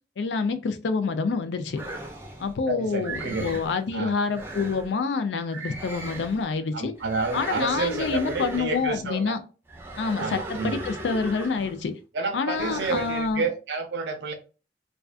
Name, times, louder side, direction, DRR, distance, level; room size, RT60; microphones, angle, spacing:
voice 1, 0.2-1.8 2.4-6.9 7.3-9.4 10.0-11.9 12.3-13.5, left 4 dB, 90° left, 0.4 m, -27 dB
sound 1, 1.7-2.5 3.0-3.8 4.3-4.9 5.5-6.5 7.0-8.9 9.7-11.9 12.5-13.3, right 2 dB, 15° right, 0.5 m, -37 dB
voice 2, 2.7-3.6 3.9-4.1 6.7-9.4 10.2-10.8 12.1-14.3, right 4 dB, 75° right, 0.5 m, -30 dB
2.3 x 2.3 x 2.3 m
head